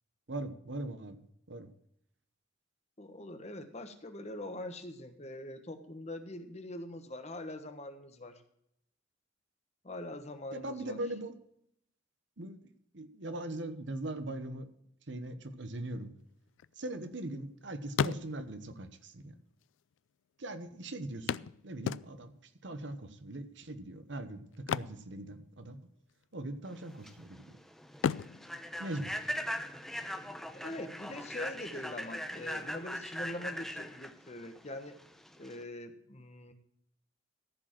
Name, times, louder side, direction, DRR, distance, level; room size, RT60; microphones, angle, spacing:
voice 1, 0.3-1.2 1.5-1.7 10.5-11.3 12.4-14.7 15.1-16.1 16.8-19.3 20.4-22.3 22.6-25.8 26.3-27.6 28.8-29.1, right 1 dB, 70° right, 10 dB, 1.1 m, -40 dB
voice 2, 3.0-8.4 9.8-11.0 30.5-34.9 35.4-36.5, left 1 dB, 35° left, 8 dB, 1.2 m, -43 dB
sound 1, 16.3-17.5 17.8-18.7 19.6-19.7 19.9-20.0 21.3-22.5 24.5-25.8 26.1-26.4 26.9-27.5 27.9-29.7 31.7-31.8 32.2-32.3, left 7 dB, 85° left, 0.3 m, -36 dB
Human voice / Train, 26.7-35.6, equal, ahead, 0.8 m, -40 dB
14.5 x 5.1 x 7.4 m, 0.72 s
head